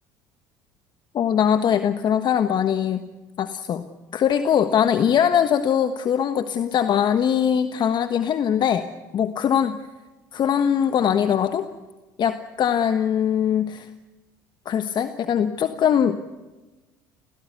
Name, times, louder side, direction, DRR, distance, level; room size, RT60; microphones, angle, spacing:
voice 1, 1.1-3.0 3.4-3.8 4.1-8.9 9.1-9.8 10.3-11.7 12.2-13.9 14.6-16.2, left 8 dB, 50° left, 9 dB, 1.3 m, -21 dB
28.5 x 18.0 x 8.2 m, 1.2 s
hypercardioid pair, 65°, 10 cm